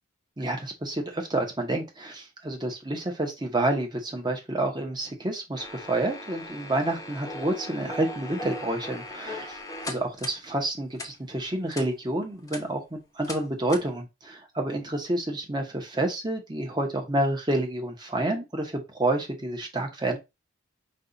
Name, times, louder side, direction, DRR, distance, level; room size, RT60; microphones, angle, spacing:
voice 1, 0.4-20.2, right 1 dB, 20° right, 0.9 m, -29 dB
sound 1, 5.5-10.4 10.9-11.1 11.7-11.9 12.3-12.6 13.2-13.4 13.7-13.9, left 1 dB, 15° left, 0.8 m, -38 dB
5.3 x 2.4 x 3.9 m
head